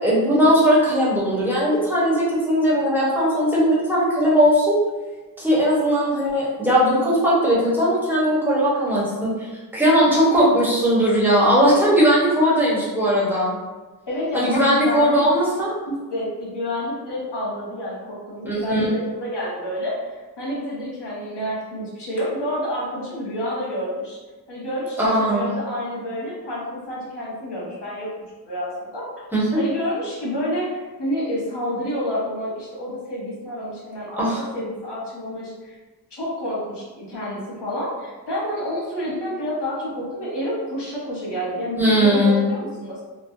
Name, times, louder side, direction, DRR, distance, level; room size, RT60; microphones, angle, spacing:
voice 1, 0.0-4.8 5.4-13.6 14.3-15.7 18.4-19.0 25.0-25.5 29.3-29.6 34.2-34.4 41.8-42.5, equal, 5° right, -8 dB, 1.1 m, -19 dB
voice 2, 14.1-15.2 15.9-20.1 20.4-24.2 24.5-28.1 28.4-29.1 29.6-35.7 36.1-43.0, equal, 85° left, -6 dB, 1.1 m, -29 dB
3.0 x 2.1 x 2.7 m, 1.2 s
wide cardioid pair, 75°, 40 cm